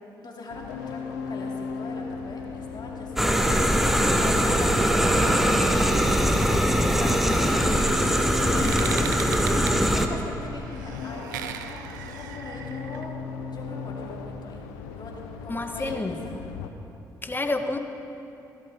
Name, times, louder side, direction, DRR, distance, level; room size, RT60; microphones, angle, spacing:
voice 1, 0.2-3.7 4.1-6.6 6.8-8.1 8.4-9.0 9.4-11.8 12.1-13.2 13.5-14.6 14.9-16.2 16.4-16.6, left 3 dB, 45° left, -1 dB, 2.3 m, -40 dB
sound 1, 0.5-16.7, left 5 dB, 85° left, 0.6 m, -37 dB
sound 2, 3.2-10.1, equal, ahead, 0.9 m, -22 dB
sound 3, 7.6-13.0, right 9 dB, 90° right, 0.4 m, -39 dB
voice 2, 15.5-16.2 17.2-17.8, left 2 dB, 20° left, 7 dB, 1.0 m, -28 dB
15.5 x 11.5 x 3.5 m, 2.9 s
hypercardioid pair, 45°, 10 cm